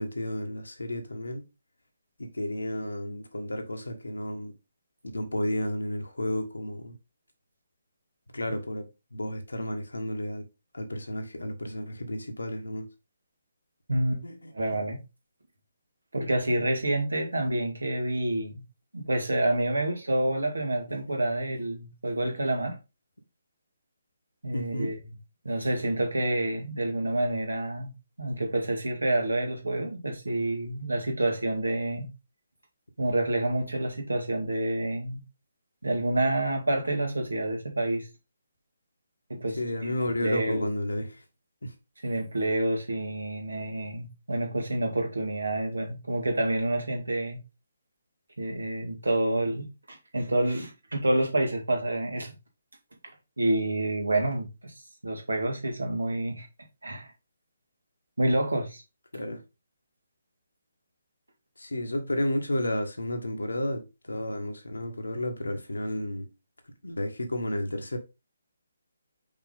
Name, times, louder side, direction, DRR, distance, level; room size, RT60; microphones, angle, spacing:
voice 1, 0.0-1.4 2.2-4.5 5.1-6.9 8.3-10.4 10.7-12.9 14.2-14.8 20.9-21.0 24.5-25.0 39.6-41.2 41.6-41.7 59.1-59.4 61.6-66.3 66.8-68.0, left 1 dB, 75° left, 1.4 m, -32 dB
voice 2, 13.9-14.2 14.5-15.0 16.1-18.6 18.9-22.8 24.4-25.0 25.4-27.9 28.2-32.1 33.0-35.2 35.8-38.1 39.3-39.9 40.2-40.7 42.0-47.4 48.4-52.3 53.4-54.7 55.0-56.5 56.8-57.1 58.2-58.8, right 1 dB, 75° right, 2.0 m, -28 dB
5.7 x 4.4 x 3.8 m
figure-of-eight pair, 140°, 0 cm